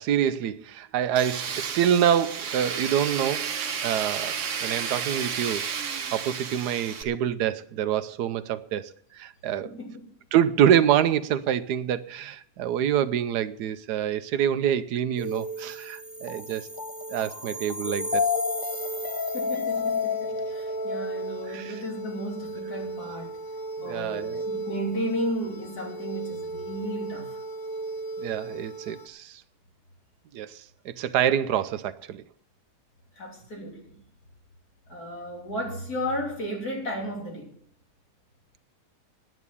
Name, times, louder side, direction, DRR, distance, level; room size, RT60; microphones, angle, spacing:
voice 1, 0.0-9.7 10.3-16.7 17.1-18.2 21.5-21.8 23.8-24.4 28.2-29.4 30.3-32.2, right 9 dB, 90° right, 1.3 m, -26 dB
Tools, 1.2-7.0, right 7 dB, 55° right, 1.2 m, -32 dB
voice 2, 9.6-10.1 19.3-23.4 23.8-27.4 33.1-34.0 34.9-37.6, equal, 70° left, 3.6 m, -34 dB
sound 1, 15.2-29.1, left 2 dB, 20° left, 0.6 m, -32 dB
9.6 x 9.2 x 8.3 m
omnidirectional pair, 1.7 m